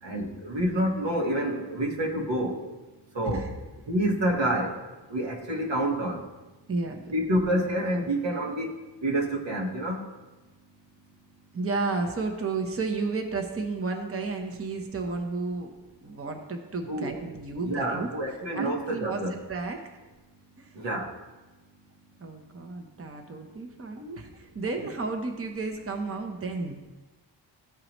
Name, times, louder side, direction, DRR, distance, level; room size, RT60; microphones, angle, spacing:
voice 1, 0.0-2.6 3.1-3.5 3.9-4.8 5.1-6.3 7.1-8.7 9.0-10.1 16.9-17.1 17.6-19.4 20.7-21.1, right 1 dB, 80° right, 0 dB, 1.5 m, -28 dB
voice 2, 3.2-3.6 6.7-7.0 11.5-15.7 16.0-18.1 18.5-19.8 20.6-20.7 22.2-26.9, right 3 dB, 30° right, 3 dB, 0.8 m, -32 dB
14.0 x 4.7 x 3.0 m, 1.2 s
wide cardioid pair, 80°, 44 cm